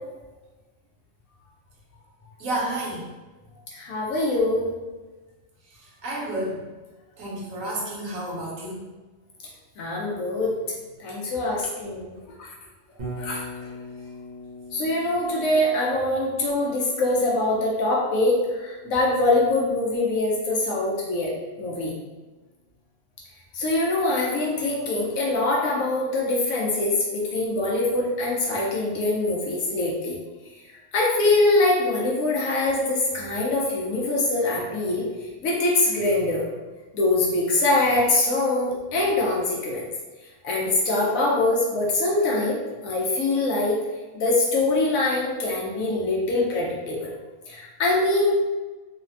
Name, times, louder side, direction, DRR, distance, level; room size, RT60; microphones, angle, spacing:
voice 1, 2.4-3.1 5.6-6.7 7.2-8.9 11.5-11.7, right 1 dB, 75° right, -4 dB, 1.2 m, -31 dB
voice 2, 3.7-4.7 9.8-10.6 11.0-12.1 12.4-12.5 13.2-13.4 14.7-21.9 23.5-30.2 30.9-35.0 35.4-36.4 36.9-39.9 40.4-43.8 44.1-47.1 47.5-48.5, left 2 dB, 80° left, -3 dB, 1.1 m, -23 dB
Bass guitar, 13.0-21.1, left 1 dB, 45° right, 0.6 m, -42 dB
3.2 x 2.1 x 2.6 m, 1.2 s
omnidirectional pair, 1.4 m